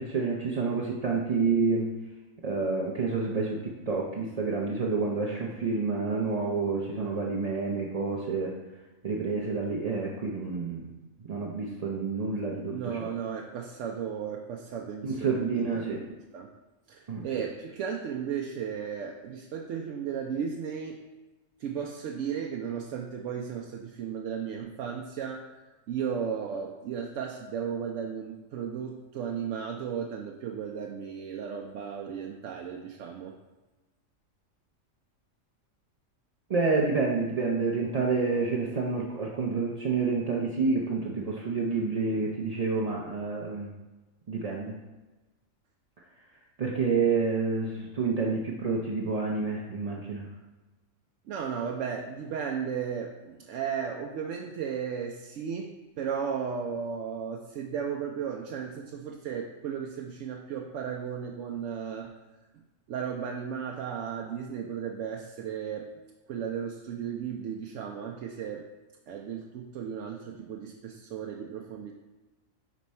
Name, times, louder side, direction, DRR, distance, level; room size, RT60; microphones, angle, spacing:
voice 1, 0.0-1.9 2.4-8.5 9.0-10.9 11.3-13.1 15.0-16.0 17.1-17.2 36.5-43.7 44.3-44.7 46.6-50.3, right 4 dB, 50° right, -3 dB, 0.5 m, -28 dB
voice 2, 12.7-16.5 16.9-21.0 21.6-25.6 25.9-33.4 51.3-62.1 62.9-65.9 66.3-68.7 69.1-71.9, right 7 dB, 70° right, 0 dB, 0.8 m, -35 dB
5.2 x 4.5 x 4.2 m, 1.1 s
omnidirectional pair, 1.4 m